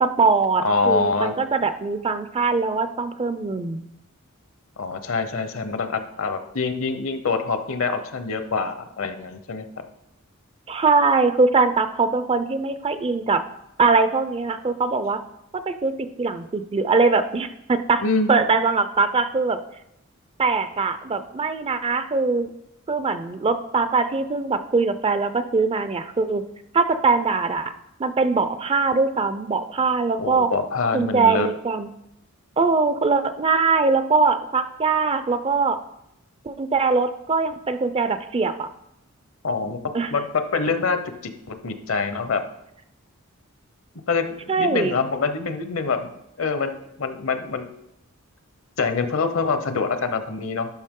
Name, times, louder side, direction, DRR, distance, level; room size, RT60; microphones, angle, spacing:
voice 1, 0.0-3.8 10.7-13.4 13.8-15.2 15.7-18.0 18.3-19.6 20.4-22.5 22.9-26.4 26.7-27.7 28.0-30.5 30.9-31.9 32.6-35.8 36.4-38.7 39.9-40.1 44.5-45.0, right 4 dB, 25° right, 11 dB, 0.4 m, -22 dB
voice 2, 0.6-1.3 4.8-9.7 18.0-18.3 30.2-31.5 39.4-39.8 40.1-40.3 40.5-41.0 41.5-42.4 44.1-46.1 46.4-47.7 48.8-50.7, left 4 dB, 65° left, 9 dB, 0.8 m, -25 dB
12.0 x 5.9 x 3.7 m, 0.82 s
head